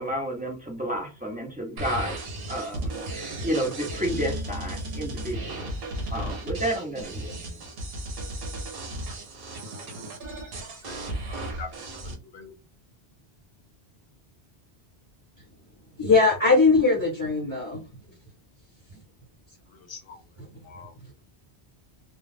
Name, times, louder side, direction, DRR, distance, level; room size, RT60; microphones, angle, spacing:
voice 1, 0.0-2.1 2.5-5.7 6.1-7.6, equal, 10° right, 0.6 m, -31 dB
sound 1, 1.8-12.1, right 1 dB, 65° right, 0.9 m, -35 dB
voice 2, 10.8-11.7 12.0-12.5 19.9-20.2 20.7-20.9, left 5 dB, 60° left, 0.8 m, -43 dB
voice 3, 16.0-17.8 18.9-19.0 20.4-20.5, left 4 dB, 30° left, 1.4 m, -20 dB
2.3 x 2.2 x 3.3 m
omnidirectional pair, 1.1 m